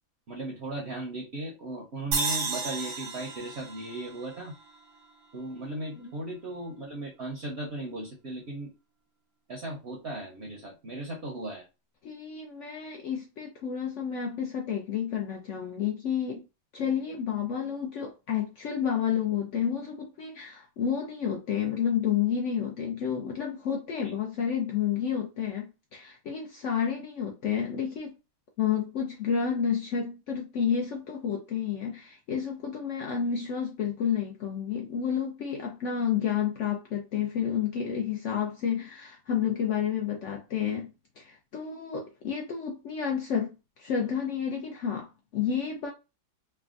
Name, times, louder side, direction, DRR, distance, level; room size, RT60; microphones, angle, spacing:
voice 1, 0.3-4.5 5.3-8.7 9.5-11.7 24.0-24.2, right 1 dB, 55° right, 0.8 m, -37 dB
sound 1, 2.1-5.4, right 4 dB, 90° right, 1.3 m, -33 dB
voice 2, 12.0-16.4 16.7-28.2 28.6-40.9 41.2-45.9, left 8 dB, 70° left, 0.7 m, -30 dB
3.3 x 2.1 x 2.4 m
omnidirectional pair, 1.7 m